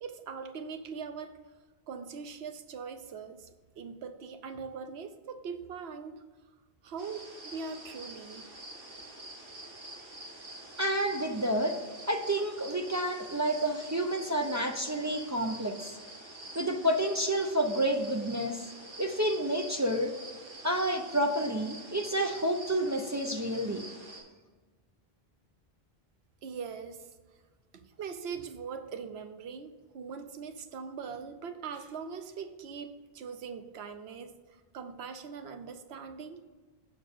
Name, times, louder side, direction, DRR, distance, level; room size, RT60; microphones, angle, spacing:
voice 1, 0.0-1.4 1.9-3.5 3.8-6.3 6.8-8.5 8.7-8.9 26.4-27.0 27.7-34.3 34.7-36.4, right 5 dB, 90° right, 9 dB, 0.9 m, -41 dB
sound 1, 7.0-24.2, right 1 dB, 65° right, 1.8 m, -47 dB
voice 2, 10.8-11.8 12.1-15.9 16.5-18.6 19.0-20.1 20.6-23.8, right 1 dB, 25° right, 2 dB, 0.4 m, -29 dB
6.7 x 4.6 x 6.5 m, 1.3 s
omnidirectional pair, 1.0 m